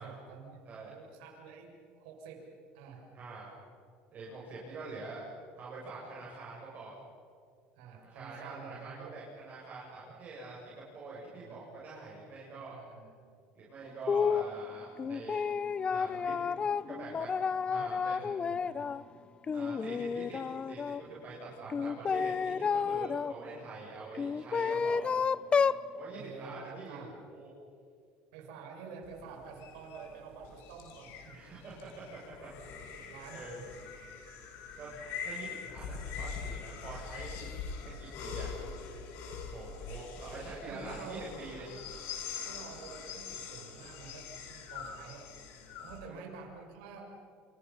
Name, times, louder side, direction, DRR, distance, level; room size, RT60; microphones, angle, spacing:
voice 1, 0.0-0.6 0.9-1.7 2.0-2.4 2.7-3.0 7.8-9.1 11.3-11.6 12.4-13.1 17.7-18.9 21.4-22.1 24.7-24.8 26.1-26.6 26.9-27.1 28.3-31.4 32.9-33.6 40.7-41.3 41.6-41.7 42.4-45.3 45.8-47.0, right 5 dB, 90° right, 1 dB, 6.8 m, -49 dB
voice 2, 3.1-3.5 4.1-5.2 5.6-6.9 8.1-12.8 13.5-15.4 15.9-16.3 16.9-17.4 17.7-18.4 19.5-20.4 20.7-25.0 25.9-27.5 31.3-32.5 33.0-33.7 34.8-34.9 35.2-37.5 37.8-38.5 39.4-41.7 46.0-46.2, right 3 dB, 35° right, -5 dB, 7.9 m, -45 dB
sound 1, 14.1-14.5 15.0-19.0 19.4-21.0 21.7-23.3 24.1-25.8, left 6 dB, 25° left, 0.6 m, -31 dB
sound 2, 29.0-46.0, left 6 dB, 65° left, 5.9 m, -43 dB
29.0 x 29.0 x 5.8 m, 2.3 s
cardioid pair, 135°, 5 cm